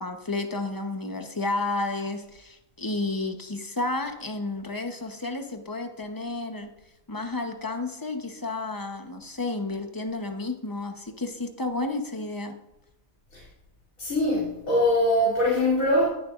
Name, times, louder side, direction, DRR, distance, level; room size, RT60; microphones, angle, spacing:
voice 1, 0.0-6.7 7.1-12.5, left 2 dB, 20° left, 5 dB, 0.6 m, -31 dB
voice 2, 14.0-16.1, left 1 dB, 80° left, -7 dB, 3.1 m, -22 dB
19.0 x 6.8 x 2.5 m, 0.90 s
omnidirectional pair, 1.5 m